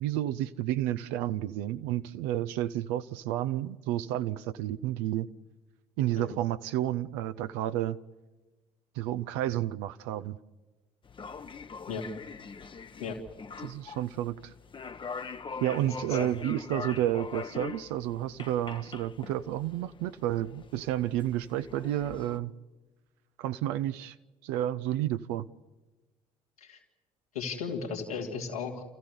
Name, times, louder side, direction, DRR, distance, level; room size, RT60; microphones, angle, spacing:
voice 1, 0.0-5.3 6.0-8.0 8.9-10.4 13.6-14.5 15.6-22.5 23.4-24.1 24.4-25.5, right 13 dB, 65° right, 12 dB, 0.7 m, -31 dB
sound 1, 11.0-22.4, left 5 dB, 30° left, 0.9 m, -43 dB
voice 2, 27.3-28.8, left 5 dB, 85° left, -1 dB, 2.8 m, -35 dB
29.5 x 14.5 x 9.6 m, 1.2 s
figure-of-eight pair, 55°, 18 cm